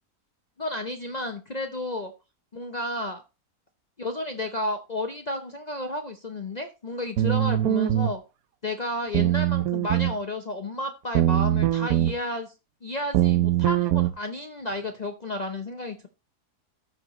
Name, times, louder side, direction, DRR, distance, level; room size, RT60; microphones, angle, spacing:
voice 1, 0.6-2.1 2.5-3.2 4.0-8.2 8.6-12.5 12.8-16.1, left 1 dB, 40° left, 6 dB, 0.6 m, -32 dB
sound 1, 7.2-8.1 9.1-10.2 11.1-12.1 13.1-14.1, right 13 dB, 70° right, 1.0 m, -22 dB
14.0 x 5.1 x 3.0 m, 0.29 s
omnidirectional pair, 1.7 m